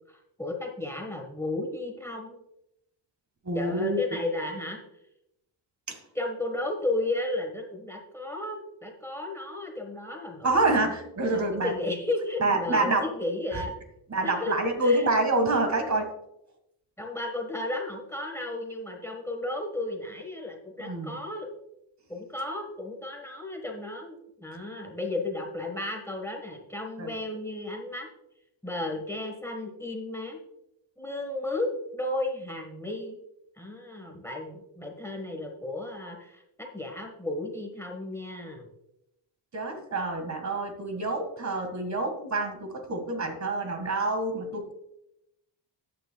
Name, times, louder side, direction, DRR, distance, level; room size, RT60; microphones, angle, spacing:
voice 1, 0.1-2.4 3.5-4.8 6.1-10.6 11.3-13.7 14.2-14.5 14.8-15.1 17.0-21.5 22.1-28.1 28.6-30.4 31.0-33.2 33.6-38.7, left 2 dB, 5° left, 3 dB, 1.3 m, -34 dB
voice 2, 3.4-4.0 5.9-6.0 10.4-11.7 12.4-13.0 13.5-13.6 14.1-16.1 20.8-21.2 27.0-27.1 39.5-44.7, right 2 dB, 35° right, 6 dB, 1.7 m, -27 dB
14.0 x 8.9 x 2.2 m, 0.83 s
cardioid pair, 135°, 45 cm